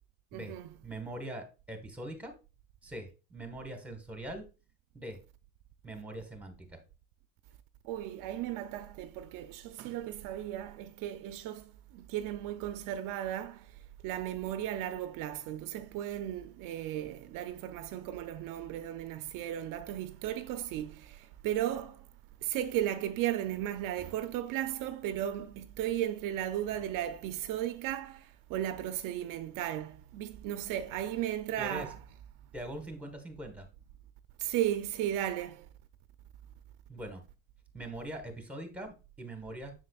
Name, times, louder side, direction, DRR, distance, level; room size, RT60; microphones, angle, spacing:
voice 1, 0.3-0.7 7.8-13.7 14.0-22.1 22.4-32.0 34.4-35.7, right 12 dB, 65° right, 0.6 m, -35 dB
voice 2, 0.8-2.3 2.8-4.4 4.9-5.2 5.8-6.8 31.6-31.9 32.5-33.7 36.9-37.2 37.7-39.7, right 1 dB, 5° right, 1.4 m, -42 dB
7.5 x 6.4 x 2.4 m
cardioid pair, 145°, 35 cm